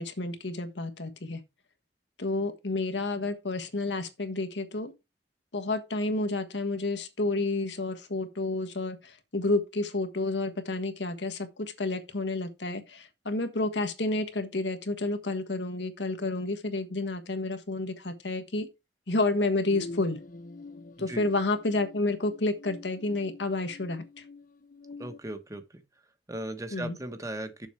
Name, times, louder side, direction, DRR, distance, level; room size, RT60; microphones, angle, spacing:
voice 1, 0.0-1.4 2.2-4.9 5.5-18.7 19.1-20.2 21.0-24.2 26.7-27.0, left 2 dB, 80° left, 1.5 m, -30 dB
sound 1, 19.7-25.2, left 3 dB, 50° left, 0.9 m, -46 dB
voice 2, 25.0-25.6 26.3-27.7, right 1 dB, 20° right, 1.3 m, -37 dB
7.1 x 7.1 x 4.6 m
head